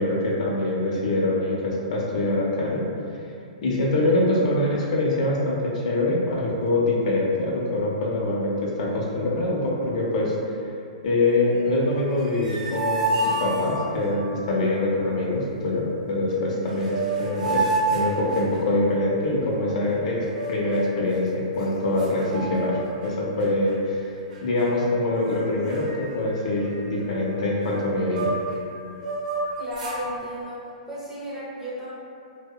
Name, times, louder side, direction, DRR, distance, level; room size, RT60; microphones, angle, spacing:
voice 1, 0.0-2.8 3.6-10.4 11.0-24.1 24.4-28.3, left 2 dB, 60° left, -3 dB, 0.5 m, -24 dB
sound 1, 12.1-14.1 16.3-16.4 16.7-18.9 20.2-21.1 21.6-21.7 22.0-23.1 23.4-23.7 24.3-24.9 25.2-25.4 25.7-28.6 29.0-30.0, right 2 dB, 80° right, 0.6 m, -29 dB
voice 2, 29.6-31.9, equal, 10° right, -9 dB, 0.5 m, -34 dB
2.7 x 2.0 x 2.2 m, 2.5 s
hypercardioid pair, 150°, 4 cm